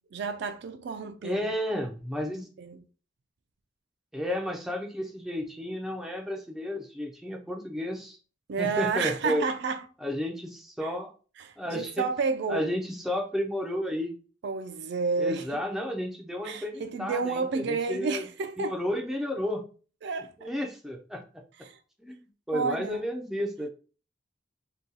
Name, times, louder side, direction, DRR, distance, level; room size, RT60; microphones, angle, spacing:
voice 1, 0.1-1.5 2.6-2.8 8.5-9.8 11.4-12.7 14.4-15.6 16.4-18.8 20.0-20.5 21.6-21.8 22.5-23.0, right 4 dB, 60° right, 0.4 m, -31 dB
voice 2, 1.2-2.5 4.1-8.2 8.6-9.5 10.0-11.1 11.6-12.1 12.5-14.1 15.2-18.2 18.6-19.6 20.4-21.4 22.0-23.7, left 1 dB, ahead, 0.4 m, -32 dB
2.7 x 2.3 x 3.7 m
head